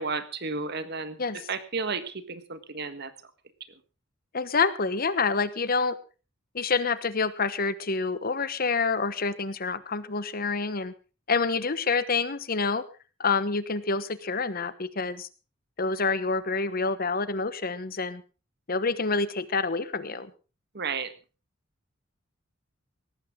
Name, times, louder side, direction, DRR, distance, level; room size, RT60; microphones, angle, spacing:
voice 1, 0.0-1.2 1.5-3.1 20.7-21.1, right 4 dB, 55° right, 12 dB, 1.6 m, -32 dB
voice 2, 4.3-6.0 6.5-10.9 11.3-12.8 13.2-15.3 15.8-18.2 18.7-20.3, left 4 dB, 45° left, 15 dB, 1.1 m, -27 dB
18.5 x 15.0 x 3.7 m, 0.34 s
head